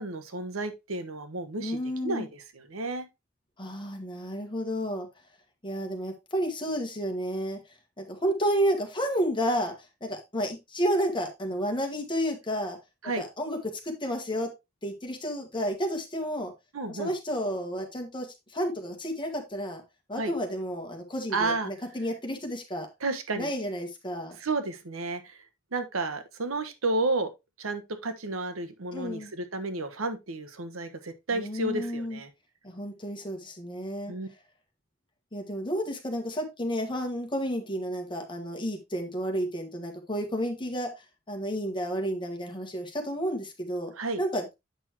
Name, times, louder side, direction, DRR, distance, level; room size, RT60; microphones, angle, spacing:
voice 1, 0.0-3.1 13.0-13.2 16.7-17.1 20.2-20.3 21.3-21.7 23.0-23.5 24.4-25.4 25.7-27.3 27.6-32.3 34.1-34.3 43.9-44.2, right 2 dB, 90° right, 1.1 m, -32 dB
voice 2, 1.6-2.3 3.6-5.1 5.6-7.6 8.0-9.7 10.0-12.8 13.2-13.6 13.8-14.5 14.8-16.5 16.9-18.3 18.5-19.8 20.1-22.9 23.3-24.4 28.9-29.3 31.3-32.2 32.6-34.1 35.3-40.9 41.3-43.9 44.2-44.5, equal, 25° left, 1.8 m, -31 dB
8.1 x 6.1 x 3.0 m
head